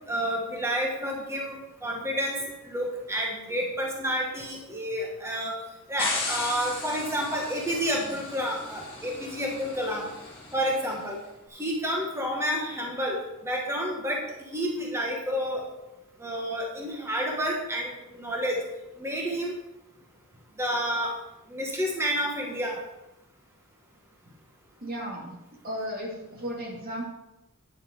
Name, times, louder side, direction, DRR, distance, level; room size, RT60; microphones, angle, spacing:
voice 1, 0.1-5.6 5.9-10.1 10.5-11.2 11.5-14.2 14.5-15.6 16.2-18.6 19.0-19.6 20.6-21.2 21.5-22.8, equal, 10° right, -1 dB, 1.5 m, -30 dB
sound 1, 6.0-11.1, left 3 dB, 25° left, 2.3 m, -37 dB
voice 2, 24.8-25.3 25.6-27.0, equal, 40° right, -2 dB, 2.5 m, -34 dB
9.5 x 7.6 x 5.3 m, 0.95 s
head